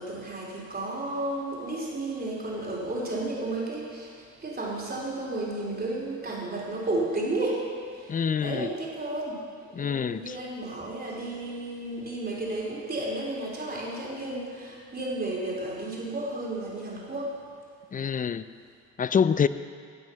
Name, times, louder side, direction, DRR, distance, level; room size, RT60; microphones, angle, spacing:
voice 1, 0.0-17.4, right 2 dB, 30° right, -3 dB, 3.4 m, -33 dB
voice 2, 8.1-8.7 9.7-10.4 17.9-18.4 19.0-19.5, left 7 dB, 30° left, 14 dB, 0.4 m, -26 dB
18.0 x 6.2 x 5.7 m, 2.1 s
cardioid pair, 90°, 30 cm